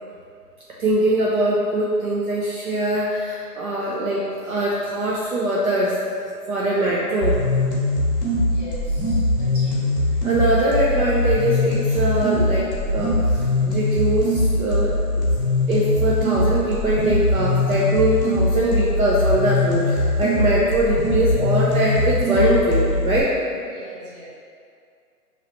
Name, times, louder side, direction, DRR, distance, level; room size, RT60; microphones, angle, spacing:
voice 1, 0.8-6.0 6.5-7.4 10.2-15.2 15.7-23.4, right 1 dB, 60° right, -5 dB, 0.7 m, -22 dB
sound 1, 7.2-23.2, left 1 dB, 30° left, 1.0 m, -21 dB
voice 2, 8.4-10.2 23.6-24.3, right 1 dB, 35° right, -9 dB, 1.2 m, -41 dB
5.0 x 3.1 x 2.9 m, 2.3 s
hypercardioid pair, 175°, 47 cm